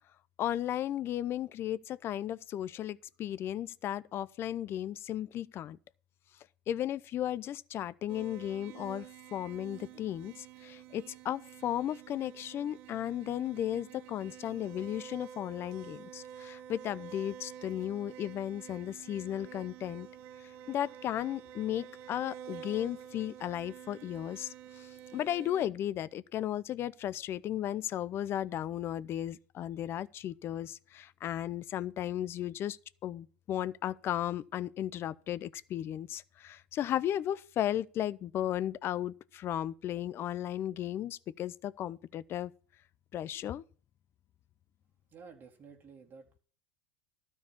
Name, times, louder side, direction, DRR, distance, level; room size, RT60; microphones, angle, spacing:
voice 1, 0.4-5.8 6.7-20.1 20.7-42.5 43.1-43.6, left 11 dB, 40° left, 0.6 m, -35 dB
sound 1, 8.1-25.7, right 10 dB, 60° right, 1.0 m, -49 dB
voice 2, 45.1-46.4, right 5 dB, 35° right, 2.3 m, -52 dB
12.5 x 4.7 x 8.3 m
hypercardioid pair, 95°, 6 cm